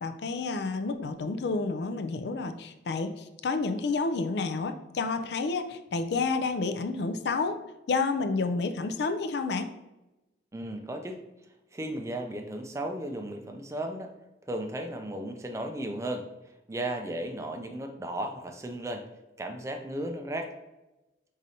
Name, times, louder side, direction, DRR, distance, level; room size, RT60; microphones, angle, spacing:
voice 1, 0.0-7.6 7.9-9.7, left 4 dB, 65° left, 8 dB, 0.4 m, -30 dB
voice 2, 10.5-11.2 11.7-14.1 14.5-16.3 16.7-19.0 19.4-20.5, right 1 dB, 15° right, 5 dB, 0.4 m, -35 dB
4.8 x 3.9 x 2.7 m, 1.0 s
head